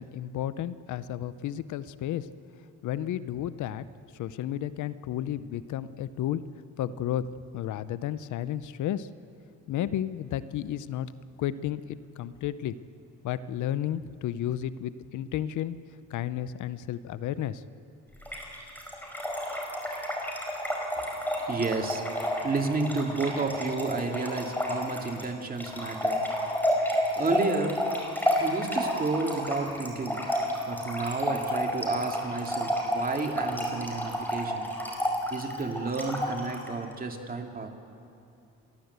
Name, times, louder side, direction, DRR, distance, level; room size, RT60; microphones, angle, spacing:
voice 1, 0.0-2.3 2.8-3.8 4.1-6.4 6.8-7.2 7.5-9.1 9.7-11.1 11.4-12.7 13.2-15.8 16.1-17.6, left 11 dB, 75° left, 15 dB, 0.7 m, -32 dB
Trickle dribble / Fill (with liquid), 18.2-36.7, equal, 5° left, 4.8 m, -30 dB
voice 2, 21.5-22.1 22.4-26.3 27.2-27.9 28.4-30.3 30.7-34.7 35.3-37.7, right 3 dB, 30° right, 3 dB, 2.4 m, -31 dB
29.5 x 12.0 x 8.0 m, 2.7 s
cardioid pair, 90°, 30 cm